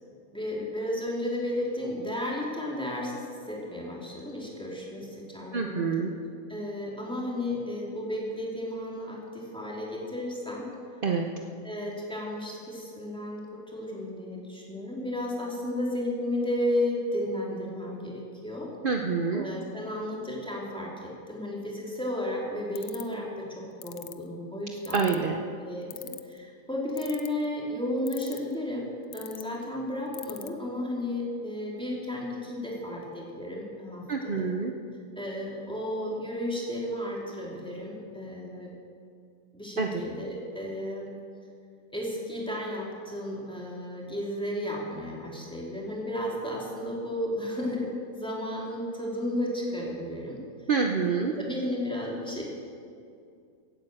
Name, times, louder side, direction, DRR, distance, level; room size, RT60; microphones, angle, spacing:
voice 1, 0.3-6.0 6.5-10.7 11.6-18.7 19.3-25.3 25.6-28.9 29.1-34.5 35.2-38.7 39.5-41.1 41.9-50.4 51.4-52.4, left 1 dB, 5° left, -4 dB, 3.1 m, -33 dB
voice 2, 5.5-6.1 11.0-11.2 18.8-19.4 24.9-25.4 34.1-34.7 39.8-39.9 50.7-51.3, right 5 dB, 50° right, 3 dB, 0.6 m, -26 dB
sound 1, 22.8-23.1 23.8-24.1 24.8-25.3 25.9-26.4 27.0-27.4 28.1-28.5 29.1-29.4 30.1-30.5, left 13 dB, 85° left, 1.4 m, -40 dB
16.5 x 8.9 x 7.8 m, 2.4 s
omnidirectional pair, 1.9 m